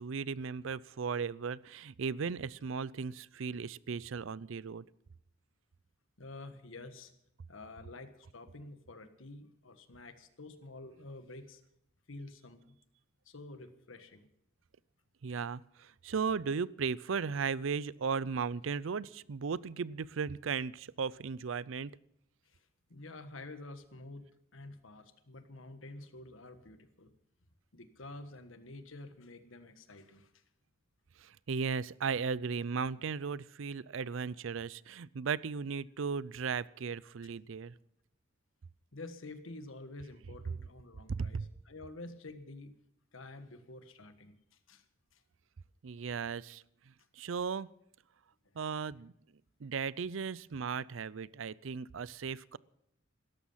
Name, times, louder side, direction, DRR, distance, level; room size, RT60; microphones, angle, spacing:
voice 1, 0.0-4.8 15.2-21.9 31.2-37.7 41.1-41.5 45.8-46.6 47.2-47.7 48.6-49.1 49.6-52.6, right 5 dB, 70° right, 21 dB, 0.5 m, -36 dB
voice 2, 6.2-7.1 7.5-11.6 12.1-12.8 13.2-14.3 22.4-24.2 24.5-27.1 27.7-30.4 38.9-42.7 43.1-44.8 45.1-45.2, left 2 dB, 75° left, 9 dB, 1.5 m, -49 dB
17.0 x 13.5 x 5.7 m, 0.75 s
head